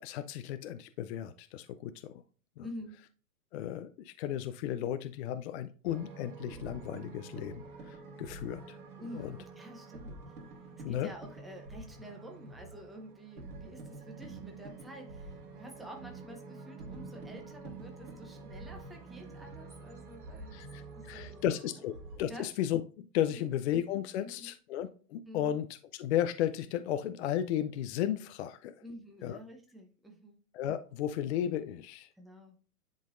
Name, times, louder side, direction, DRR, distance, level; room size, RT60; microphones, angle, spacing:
voice 1, 0.0-2.2 2.6-2.7 3.5-8.8 9.1-9.3 10.8-11.1 20.5-28.7 29.2-29.4 30.5-32.1, left 11 dB, 50° left, 10 dB, 0.5 m, -34 dB
voice 2, 2.6-3.0 9.0-10.4 10.9-20.6 20.9-21.5 22.3-22.5 23.4-23.5 24.2-24.5 25.3-25.6 28.8-30.4 32.1-32.6, equal, ahead, 2 dB, 0.7 m, -49 dB
sound 1, 5.8-22.2, right 3 dB, 75° right, 2.4 m, -47 dB
10.5 x 3.9 x 2.5 m, 0.40 s
hypercardioid pair, 130°, 46 cm